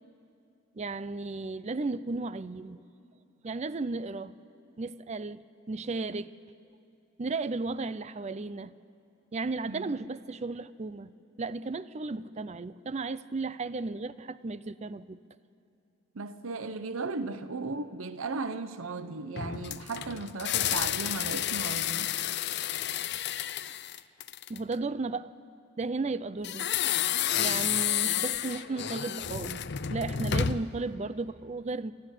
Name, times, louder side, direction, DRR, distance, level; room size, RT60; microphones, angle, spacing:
voice 1, 0.7-2.8 3.4-4.3 4.8-6.3 7.2-8.7 9.3-11.1 11.4-15.2 24.5-25.3 25.8-26.7 27.4-31.9, right 3 dB, 35° right, 0.5 m, -34 dB
voice 2, 16.1-22.1, right 3 dB, 80° right, 0.8 m, -36 dB
sound 1, 19.4-24.7 26.4-30.8, left 10 dB, 55° left, 0.6 m, -31 dB
29.0 x 13.0 x 9.9 m
head